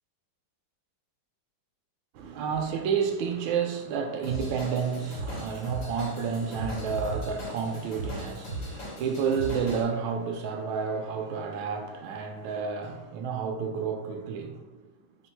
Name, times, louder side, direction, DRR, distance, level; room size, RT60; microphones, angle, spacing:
voice 1, 2.1-14.8, right 6 dB, 75° right, 1.3 m, -30 dB
Drum kit / Drum, 4.2-9.8, right 1 dB, 80° left, 2.2 m, -37 dB
4.3 x 2.0 x 4.4 m
omnidirectional pair, 2.3 m